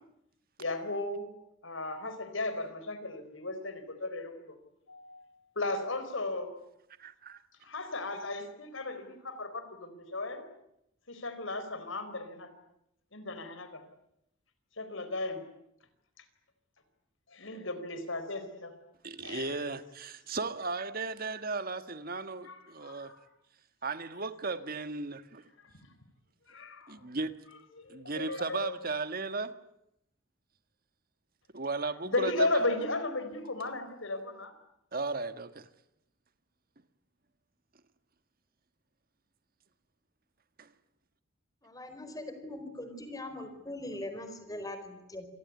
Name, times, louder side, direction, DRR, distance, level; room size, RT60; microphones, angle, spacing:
voice 1, 0.6-1.3 1.6-4.6 4.9-5.3 5.6-6.5 7.6-10.4 11.1-12.5 13.1-13.8 14.8-15.4 17.3-18.7 19.2-19.6 22.4-23.2 25.6-25.7 26.5-27.0 27.8-28.7 32.1-34.5, left 2 dB, 75° left, 10 dB, 4.3 m, -35 dB
voice 2, 7.0-7.4 19.0-23.1 23.8-25.5 26.9-27.3 27.9-29.5 31.5-32.6 34.9-35.7 40.6-40.7, right 3 dB, 45° right, 10 dB, 1.5 m, -36 dB
voice 3, 41.6-45.3, left 1 dB, 20° left, 8 dB, 4.5 m, -41 dB
28.0 x 18.5 x 9.6 m, 0.80 s
head